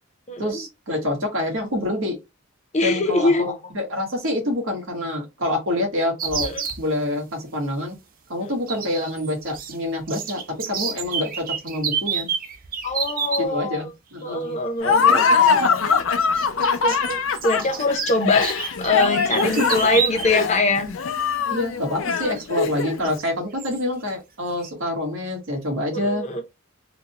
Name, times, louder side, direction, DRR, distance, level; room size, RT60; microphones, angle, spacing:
voice 1, 0.4-2.2 2.8-6.5 6.8-8.0 8.3-12.3 13.4-14.5 15.4-15.8 19.4-19.7 21.5-26.4, left 1 dB, 80° right, 1.5 m, -27 dB
voice 2, 2.7-3.5 6.4-6.6 8.4-8.6 12.8-13.9 14.2-15.7 16.5-20.9 25.9-26.4, left 2 dB, 35° left, 0.7 m, -23 dB
sound 1, 6.2-6.8 8.7-9.8 10.0-13.4 14.8-15.0 16.2-20.4 20.8-20.9 22.4-22.5 23.0-23.3 23.6-23.8, right 7 dB, 45° right, 0.5 m, -29 dB
Laughter, 14.8-23.1, left 5 dB, 80° left, 0.5 m, -22 dB
3.9 x 2.2 x 2.9 m
head